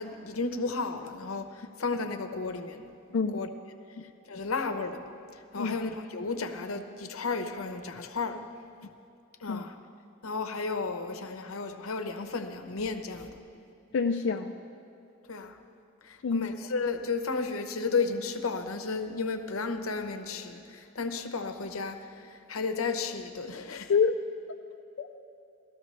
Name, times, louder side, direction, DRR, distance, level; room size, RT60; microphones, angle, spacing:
voice 1, 0.0-1.5 1.8-3.5 4.3-5.1 5.5-8.4 9.4-9.7 10.2-13.3 15.3-15.6 16.1-22.0 22.5-23.9, left 4 dB, 85° left, 7 dB, 0.8 m, -33 dB
voice 2, 13.9-14.5 16.2-16.5 23.9-24.1 25.0-25.1, left 5 dB, 60° left, 3 dB, 0.4 m, -26 dB
17.5 x 13.0 x 3.2 m, 2.6 s
head